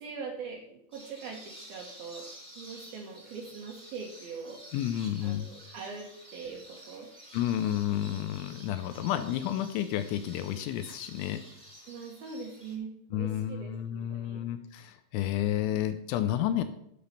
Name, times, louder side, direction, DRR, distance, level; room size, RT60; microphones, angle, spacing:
voice 1, 0.0-2.2 2.6-4.6 5.2-7.1 10.5-10.6 11.9-14.4, right 5 dB, 65° right, 0 dB, 2.6 m, -42 dB
sound 1, 0.9-12.8, right 1 dB, 5° left, 0.8 m, -51 dB
voice 2, 4.7-5.5 7.3-11.4 13.1-16.6, left 11 dB, 80° left, 10 dB, 2.9 m, -31 dB
12.0 x 5.7 x 5.8 m, 0.74 s
omnidirectional pair, 5.7 m